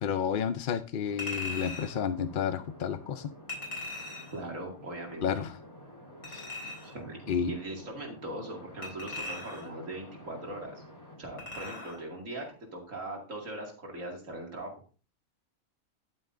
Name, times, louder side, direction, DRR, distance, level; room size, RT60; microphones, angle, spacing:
voice 1, 0.0-3.3 5.2-5.6 6.3-6.5 7.3-7.5, left 7 dB, 60° left, 10 dB, 0.5 m, -31 dB
sound 1, 1.0-11.6, left 1 dB, 20° left, 3.3 m, -50 dB
Chink clink, 1.2-2.0 3.5-4.4 6.2-7.0 8.8-9.8 11.4-12.0 12.4-12.5, left 2 dB, 75° left, 4.1 m, -39 dB
voice 2, 4.3-5.3 6.8-10.7 11.2-12.4 12.7-14.8, right 1 dB, 65° right, 0 dB, 2.6 m, -40 dB
10.5 x 9.4 x 2.6 m, 0.36 s
omnidirectional pair, 1.5 m